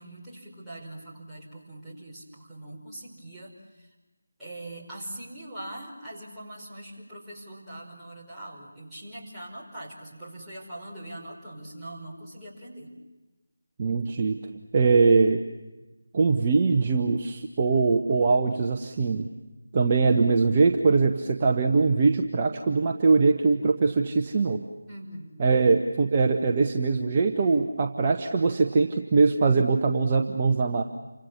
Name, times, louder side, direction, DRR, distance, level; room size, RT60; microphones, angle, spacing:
voice 1, 0.0-3.9 4.4-12.9 24.9-25.4, right 1 dB, 5° right, -11 dB, 5.2 m, -42 dB
voice 2, 13.8-14.4 14.7-15.4 16.1-19.3 19.7-24.6 25.4-30.8, right 4 dB, 25° right, 3 dB, 1.1 m, -22 dB
29.0 x 25.5 x 7.3 m, 1.1 s
figure-of-eight pair, 165°, 0 cm